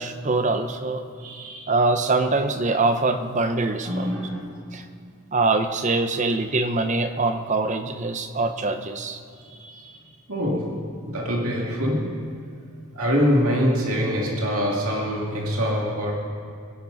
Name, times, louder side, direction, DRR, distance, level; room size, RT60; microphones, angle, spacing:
voice 1, 0.0-1.0 1.7-4.1 4.7-4.9 5.3-9.2, right 3 dB, 35° right, 8 dB, 0.7 m, -23 dB
voice 2, 1.2-1.8 3.8-4.8 6.3-6.5 9.4-12.3 12.9-16.1, equal, 75° right, -2 dB, 2.3 m, -25 dB
22.5 x 11.0 x 4.0 m, 2.4 s
head